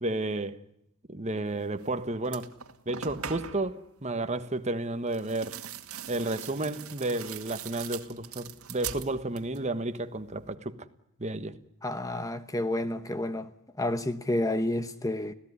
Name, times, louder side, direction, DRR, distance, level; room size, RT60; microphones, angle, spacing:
voice 1, 0.0-0.6 1.1-2.5 2.8-5.6 6.1-10.8 11.2-11.6, right 2 dB, 30° right, 1.4 m, -32 dB
sound 1, 1.8-1.9 2.2-3.7 5.1-9.7 10.0-10.6, right 8 dB, 70° right, 2.1 m, -41 dB
voice 2, 11.8-13.5 13.8-15.3, left 1 dB, 15° left, 0.9 m, -30 dB
26.5 x 17.0 x 9.8 m
head